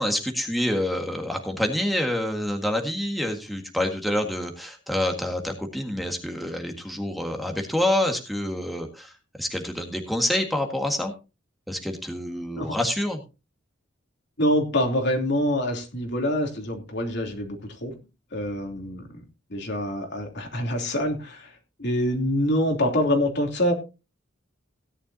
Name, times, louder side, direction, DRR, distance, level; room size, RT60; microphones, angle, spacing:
voice 1, 0.0-9.1 9.4-11.1 11.7-13.2, left 1 dB, ahead, 3 dB, 1.7 m, -27 dB
voice 2, 14.4-17.9 18.3-19.2 19.5-21.5 21.8-23.7, left 1 dB, 60° left, 3 dB, 3.1 m, -25 dB
17.0 x 10.5 x 2.8 m, 0.28 s
head